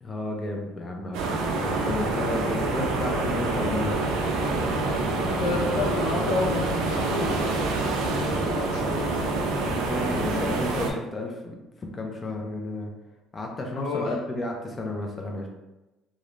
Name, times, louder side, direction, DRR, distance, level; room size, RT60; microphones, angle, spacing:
voice 1, 0.0-4.0 9.6-12.9 13.3-15.5, left 2 dB, 25° left, 1 dB, 0.4 m, -32 dB
sound 1, 1.1-10.9, right 2 dB, 85° right, 0.4 m, -26 dB
voice 2, 5.4-9.2 9.9-10.1 13.7-14.2, left 3 dB, 80° left, 0 dB, 0.5 m, -31 dB
2.4 x 2.0 x 3.0 m, 1.0 s
cardioid pair, 135°, 0 cm